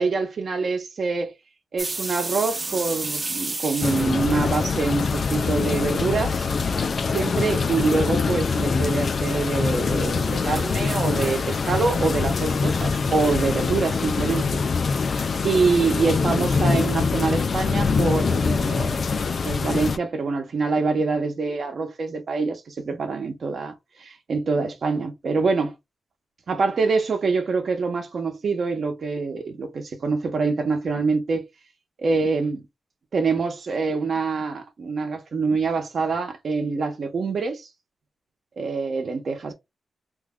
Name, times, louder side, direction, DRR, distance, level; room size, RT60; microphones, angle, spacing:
voice 1, 0.0-1.3 1.7-6.5 7.0-14.6 15.4-25.7 26.5-31.5 32.0-32.7 33.1-37.6 38.6-39.5, right 4 dB, 55° right, 0.9 m, -25 dB
sound 1, 1.8-5.6 5.8-6.5 6.9-7.0 7.6-8.0 9.0-14.4, right 3 dB, 25° right, 0.7 m, -35 dB
sound 2, 3.8-20.0, left 5 dB, 45° left, 0.3 m, -24 dB
sound 3, 11.2-15.8, left 3 dB, 85° left, 1.7 m, -41 dB
3.2 x 2.3 x 3.6 m
wide cardioid pair, 150°, 0 cm